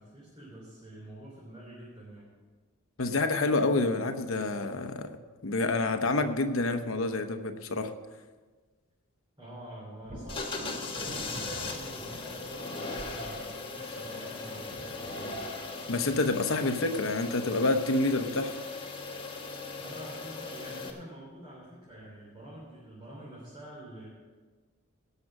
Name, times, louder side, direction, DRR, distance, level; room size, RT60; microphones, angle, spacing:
voice 1, 0.0-2.3 9.4-15.4 19.8-24.1, right 1 dB, 20° right, -7 dB, 3.2 m, -47 dB
voice 2, 3.0-5.1 5.4-7.9 15.9-18.5, left 2 dB, 65° left, 8 dB, 0.9 m, -28 dB
Thunder, 10.0-17.7 21.3-21.4 21.9-22.8, equal, 40° right, 4.9 m, -48 dB
sound 1, 10.3-20.9, left 3 dB, 25° left, 1.3 m, -38 dB
17.0 x 6.5 x 6.0 m, 1.4 s
head